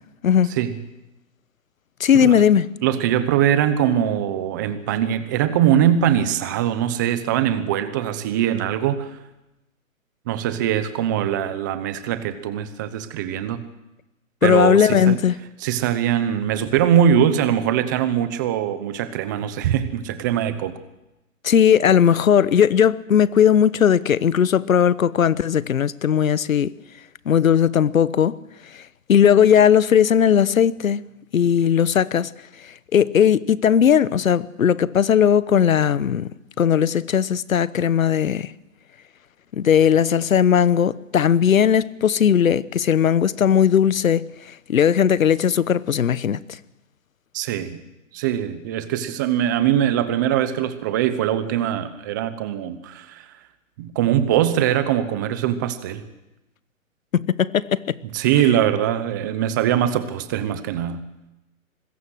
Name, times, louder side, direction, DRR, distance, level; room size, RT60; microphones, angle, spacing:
voice 1, 2.0-2.6 14.4-15.4 21.4-26.7 27.3-28.4 29.1-31.0 31.3-32.3 32.9-36.3 36.6-38.5 39.5-44.3 44.7-46.4 57.1-57.9, left 8 dB, 75° left, 1.1 m, -17 dB
voice 2, 2.8-9.1 10.3-13.6 14.4-15.2 15.6-20.8 47.3-47.8 48.1-53.3 53.8-56.0 58.1-61.0, right 10 dB, 15° right, 0.8 m, -22 dB
25.5 x 21.0 x 6.3 m
hypercardioid pair, 165°, 41 cm